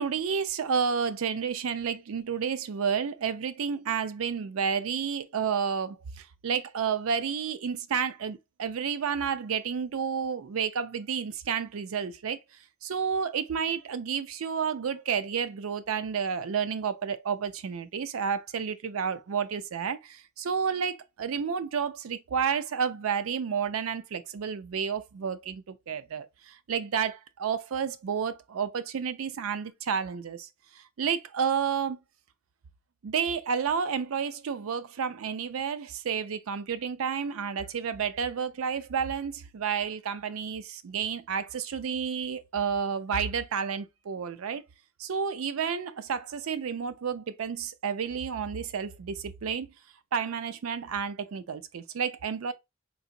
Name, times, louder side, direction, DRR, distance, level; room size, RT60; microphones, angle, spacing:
voice 1, 0.0-12.4 12.8-30.5 30.7-32.0 33.0-44.6 45.0-49.7 50.1-52.5, right 6 dB, 90° right, 0.4 m, -31 dB
4.0 x 2.8 x 2.4 m
head